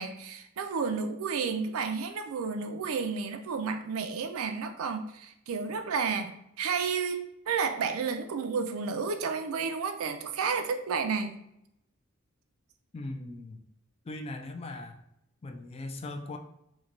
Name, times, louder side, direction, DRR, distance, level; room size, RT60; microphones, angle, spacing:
voice 1, 0.0-11.4, right 5 dB, 80° right, 7 dB, 0.4 m, -31 dB
voice 2, 12.9-13.6 14.0-15.0 15.4-16.4, left 2 dB, 30° left, 5 dB, 0.3 m, -39 dB
3.1 x 2.2 x 3.7 m, 0.79 s
head